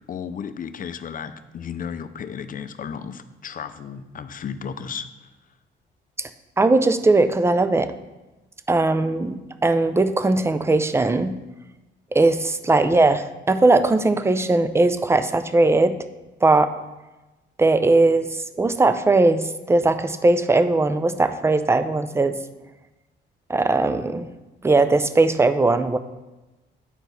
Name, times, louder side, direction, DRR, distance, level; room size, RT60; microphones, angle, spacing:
voice 1, 0.1-5.3, left 7 dB, 45° left, 11 dB, 0.6 m, -34 dB
voice 2, 6.6-7.9 8.7-11.3 12.1-15.9 16.4-16.7 17.6-22.4 23.5-24.3 24.6-26.0, right 2 dB, 15° right, 11 dB, 0.5 m, -19 dB
8.9 x 4.6 x 4.0 m, 1.1 s
cardioid pair, 90°, 20 cm